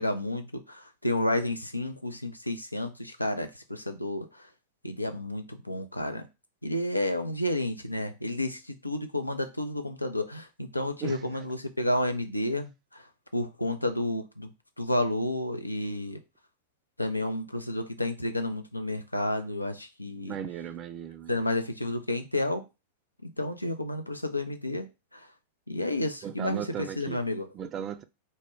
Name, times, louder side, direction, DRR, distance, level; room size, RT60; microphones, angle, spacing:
voice 1, 0.0-4.5 4.8-6.2 6.6-13.1 13.3-14.5 14.8-16.2 17.0-20.4 21.3-22.6 23.2-24.9 25.1-25.3 25.7-26.6 27.0-27.5, left 1 dB, 85° left, 0.4 m, -31 dB
voice 2, 11.0-11.4 20.2-21.5 26.2-27.2 27.5-28.0, right 9 dB, 30° right, 0.3 m, -37 dB
2.1 x 2.1 x 3.4 m
figure-of-eight pair, 90°, 0 cm